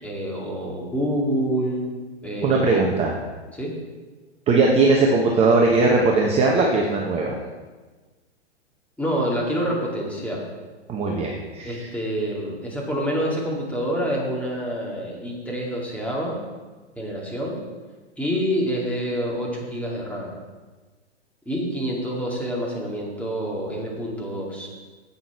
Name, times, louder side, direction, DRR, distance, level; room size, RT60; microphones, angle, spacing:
voice 1, 0.0-1.9 2.2-2.9 3.5-3.7 9.0-10.4 11.6-16.3 17.0-17.6 18.2-20.3 21.5-24.7, equal, 5° left, -4 dB, 2.4 m, -27 dB
voice 2, 2.4-3.1 4.5-7.3 10.9-11.9, right 3 dB, 20° right, -1 dB, 1.0 m, -19 dB
9.6 x 8.3 x 4.6 m, 1.3 s
hypercardioid pair, 115°, 34 cm